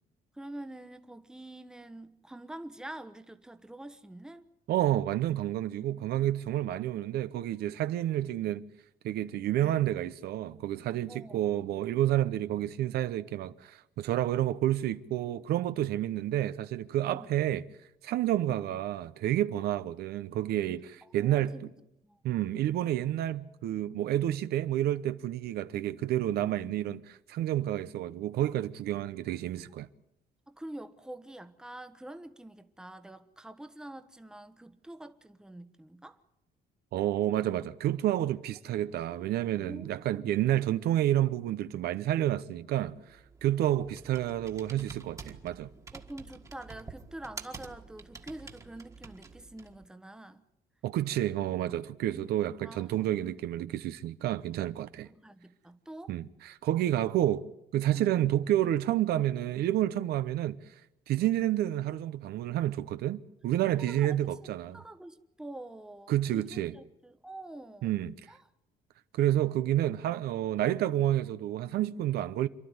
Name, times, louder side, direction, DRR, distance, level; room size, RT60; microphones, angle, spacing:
voice 1, 0.3-4.5 5.9-6.1 11.1-11.4 17.1-17.3 21.0-21.7 22.0-22.2 30.5-36.2 39.1-39.3 39.5-40.4 45.9-50.4 52.1-52.3 52.6-53.1 55.0-56.2 57.9-58.2 63.8-64.2 64.4-68.0 68.3-68.4, right 1 dB, 5° right, 1.1 m, -46 dB
voice 2, 4.7-8.6 9.0-17.6 18.0-21.5 22.2-29.9 36.9-45.7 50.8-55.1 56.1-57.4 57.7-60.8 61.1-64.8 66.1-66.7 67.8-68.1 69.1-72.5, right 13 dB, 75° right, 0.8 m, -29 dB
Computer keyboard, 42.9-49.8, right 4 dB, 20° right, 1.7 m, -48 dB
27.5 x 12.0 x 9.5 m
cardioid pair, 140°, 16 cm